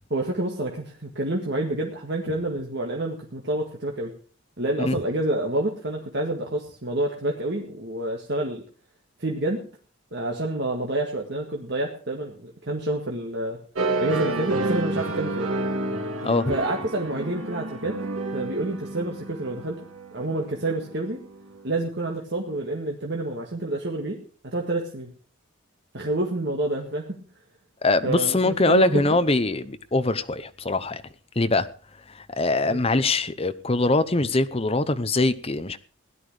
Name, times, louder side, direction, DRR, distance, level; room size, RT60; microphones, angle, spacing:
voice 1, 0.1-4.1 4.6-8.6 9.2-9.6 10.1-13.6 14.0-15.5 16.5-18.0 18.3-19.8 20.1-21.2 21.6-24.2 24.4-25.1 25.9-27.2 28.0-29.2 32.6-32.8, right 1 dB, 55° right, 1.8 m, -28 dB
sound 1, 13.8-21.6, right 2 dB, 85° right, 2.1 m, -30 dB
voice 2, 16.2-16.5 27.8-31.0 31.4-31.7 32.4-35.8, left 2 dB, 30° left, 0.8 m, -22 dB
17.0 x 11.0 x 4.9 m
head